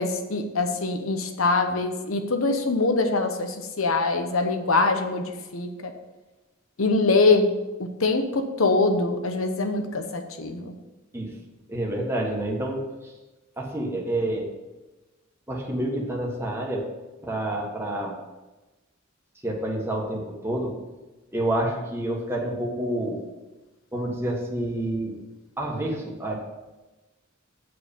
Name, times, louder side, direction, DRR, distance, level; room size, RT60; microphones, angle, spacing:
voice 1, 0.0-5.9 6.8-7.5 7.8-10.7, left 3 dB, 70° left, 6 dB, 1.0 m, -23 dB
voice 2, 11.7-12.8 13.6-14.5 15.5-16.9 17.2-18.2 19.4-20.8 21.3-23.2 23.9-25.2 25.6-26.3, right 1 dB, 10° right, -2 dB, 1.6 m, -28 dB
8.5 x 4.8 x 7.2 m, 1.1 s
head